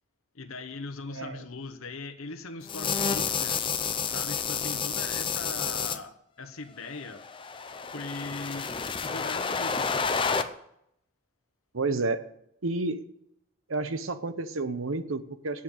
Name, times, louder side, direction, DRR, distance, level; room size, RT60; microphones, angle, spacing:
voice 1, 0.3-7.2 7.9-8.7 9.0-10.2, left 3 dB, 85° left, 7 dB, 1.0 m, -40 dB
sound 1, 2.7-6.0 7.1-10.4, left 5 dB, 25° left, 0.6 m, -30 dB
voice 2, 11.7-12.2 12.6-13.0 13.7-15.6, right 3 dB, 75° right, 11 dB, 0.9 m, -30 dB
8.6 x 7.5 x 8.8 m, 0.75 s
head